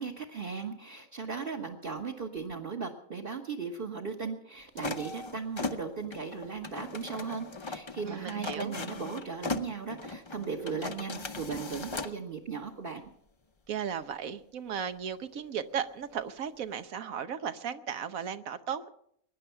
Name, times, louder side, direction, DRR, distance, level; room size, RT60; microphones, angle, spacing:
voice 1, 0.0-13.0, right 5 dB, 40° right, 3 dB, 1.4 m, -37 dB
sound 1, 4.8-12.2, left 3 dB, 30° left, 0.6 m, -38 dB
voice 2, 8.0-8.7 13.7-18.9, right 8 dB, 75° right, 10 dB, 1.3 m, -36 dB
22.5 x 10.0 x 5.7 m, 0.70 s
omnidirectional pair, 1.5 m